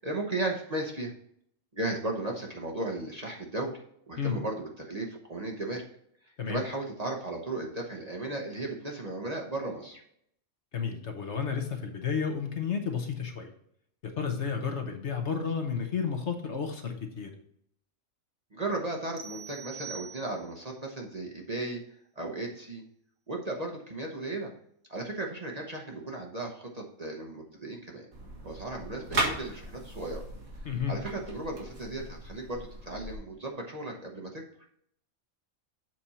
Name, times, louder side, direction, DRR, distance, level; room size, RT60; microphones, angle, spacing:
voice 1, 0.0-1.1 1.7-3.7 4.1-5.8 6.5-10.0 18.5-21.8 22.2-22.8 23.3-24.5 24.9-28.1 28.4-30.2 30.9-34.4, right 2 dB, 30° right, 0 dB, 1.0 m, -35 dB
voice 2, 10.7-13.5 14.0-17.3 30.6-30.9, left 6 dB, 55° left, 4 dB, 1.2 m, -32 dB
sound 1, 19.2-20.7, right 7 dB, 85° right, 1.4 m, -44 dB
sound 2, 28.1-33.2, right 2 dB, 65° right, 2.1 m, -37 dB
7.7 x 4.3 x 4.2 m, 0.69 s
omnidirectional pair, 1.4 m